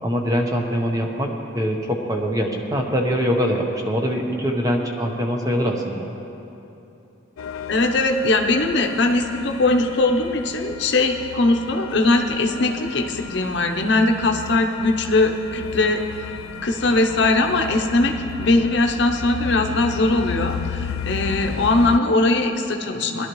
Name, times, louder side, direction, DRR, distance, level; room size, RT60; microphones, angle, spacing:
voice 1, 0.0-6.1, equal, 15° right, 1 dB, 0.9 m, -23 dB
sound 1, 7.4-22.0, left 7 dB, 85° left, 0.4 m, -34 dB
voice 2, 7.7-16.3 16.6-23.3, left 2 dB, 55° left, 4 dB, 0.8 m, -20 dB
18.0 x 11.5 x 3.1 m, 2.9 s
head